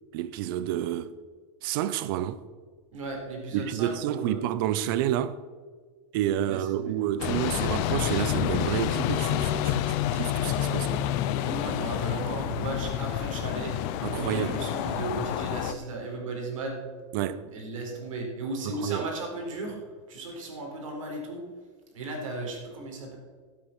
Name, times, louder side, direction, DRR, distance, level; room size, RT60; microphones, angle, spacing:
voice 1, 0.1-1.1 1.6-2.4 3.5-5.4 6.1-11.1 14.0-14.6 17.1-17.5 18.7-19.1, right 11 dB, 40° right, 0.7 m, -29 dB
voice 2, 2.9-4.4 6.4-7.0 11.3-13.7 14.1-16.8 17.5-19.8 20.1-21.4 21.9-23.2, right 2 dB, 85° right, 4.2 m, -35 dB
Car Sound, 7.2-15.7, left 11 dB, 35° left, 0.6 m, -28 dB
12.0 x 8.5 x 6.0 m
supercardioid pair, 165°, 17 cm